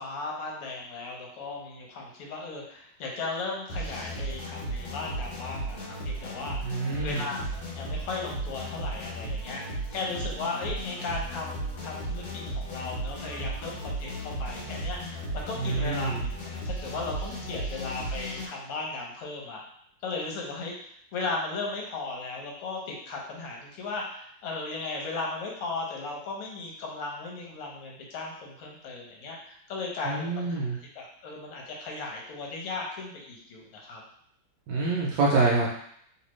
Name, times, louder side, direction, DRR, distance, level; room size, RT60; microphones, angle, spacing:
voice 1, 0.0-7.5 7.7-19.6 20.0-20.7 21.1-30.6 30.9-34.0, left 3 dB, 85° left, -1 dB, 1.8 m, -36 dB
sound 1, 3.7-18.5, right 1 dB, 65° left, 1.6 m, -35 dB
voice 2, 6.6-7.3 15.6-16.3 30.1-30.8 34.7-35.7, right 3 dB, 75° right, -4 dB, 1.0 m, -26 dB
3.2 x 3.1 x 3.0 m, 0.67 s
omnidirectional pair, 2.4 m